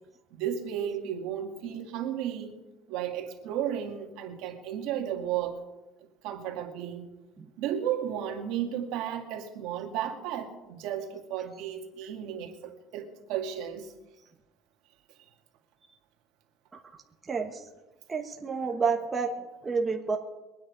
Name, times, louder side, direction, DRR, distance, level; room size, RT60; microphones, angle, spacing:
voice 1, 0.3-2.6 2.9-5.6 6.2-7.1 7.6-13.9, right 10 dB, 70° right, 3 dB, 2.2 m, -33 dB
voice 2, 17.3-17.6 18.1-19.3 19.6-20.2, right 5 dB, 15° right, 2 dB, 1.3 m, -29 dB
22.5 x 9.6 x 5.3 m, 1.1 s
cardioid pair, 155°, 0 cm